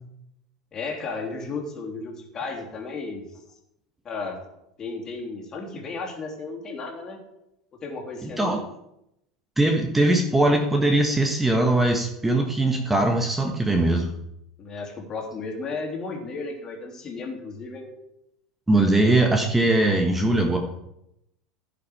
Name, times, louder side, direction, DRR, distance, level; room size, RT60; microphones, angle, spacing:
voice 1, 0.7-3.2 4.0-4.4 4.8-7.2 7.8-8.6 14.6-17.9, left 3 dB, 30° left, 1 dB, 2.9 m, -34 dB
voice 2, 8.2-8.6 9.6-14.1 18.7-20.6, right 2 dB, 10° right, 3 dB, 1.3 m, -21 dB
15.5 x 5.9 x 4.9 m, 0.84 s
figure-of-eight pair, 75°, 2 cm